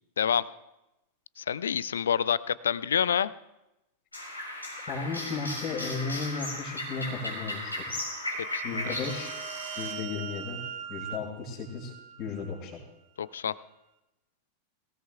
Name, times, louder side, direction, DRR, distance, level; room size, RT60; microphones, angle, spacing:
voice 1, 1.4-3.3 8.5-8.9 13.2-13.5, left 8 dB, 65° left, 19 dB, 0.4 m, -27 dB
sound 1, 4.1-9.9, left 1 dB, 85° left, 4.3 m, -36 dB
voice 2, 4.9-8.1 8.6-9.3 9.7-10.6 10.9-11.9 12.2-12.8, left 4 dB, 40° left, -8 dB, 4.8 m, -35 dB
sound 2, 8.2-12.7, right 10 dB, 40° right, 0.9 m, -41 dB
23.5 x 17.0 x 2.4 m, 0.91 s
figure-of-eight pair, 90°, 0 cm